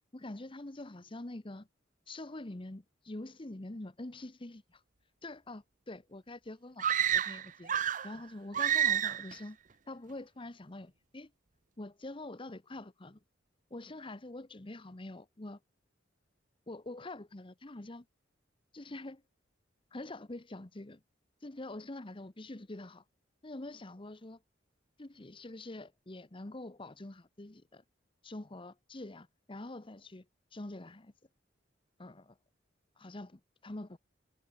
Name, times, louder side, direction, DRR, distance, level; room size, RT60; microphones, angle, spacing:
voice 1, 0.1-1.7 2.1-4.8 5.2-6.9 7.1-7.7 8.0-9.6 9.9-11.3 11.8-13.2 13.7-15.6 16.7-18.1 18.7-19.2 19.9-21.0 21.4-23.0 23.4-24.4 25.0-27.8 28.2-30.3 30.5-31.1 32.0-32.4 33.0-34.0, left 2 dB, 25° left, 1.0 m, -45 dB
sound 1, 6.8-8.2 8.5-9.3, right 9 dB, 45° right, 0.7 m, -29 dB
head